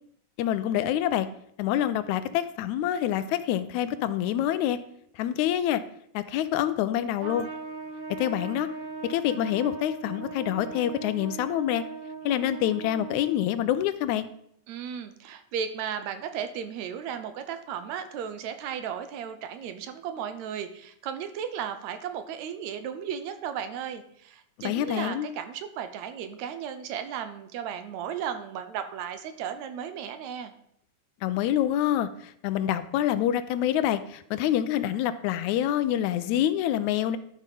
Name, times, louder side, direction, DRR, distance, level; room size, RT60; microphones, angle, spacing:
voice 1, 0.4-1.3 1.6-4.8 5.2-5.8 6.1-7.5 8.2-8.7 9.0-11.8 12.3-14.3 24.6-25.3 31.2-37.2, left 11 dB, 80° left, 12 dB, 1.9 m, -26 dB
Trumpet, 7.2-13.7, right 4 dB, 55° right, 1.3 m, -39 dB
voice 2, 14.7-30.5, right 8 dB, 80° right, 9 dB, 1.9 m, -35 dB
11.5 x 5.1 x 5.3 m, 0.70 s
omnidirectional pair, 3.4 m